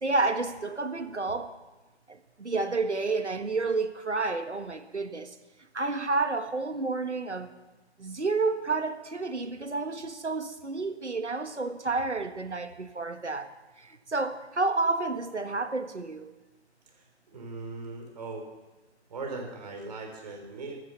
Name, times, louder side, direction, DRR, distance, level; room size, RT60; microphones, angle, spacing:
voice 1, 0.0-1.5 2.1-5.3 5.7-7.5 8.0-13.5 13.8-16.3, right 3 dB, 80° right, 1.6 m, -30 dB
voice 2, 16.9-18.5 19.1-20.8, right 3 dB, 35° right, 3.8 m, -39 dB
15.5 x 11.0 x 6.9 m
figure-of-eight pair, 150°, 34 cm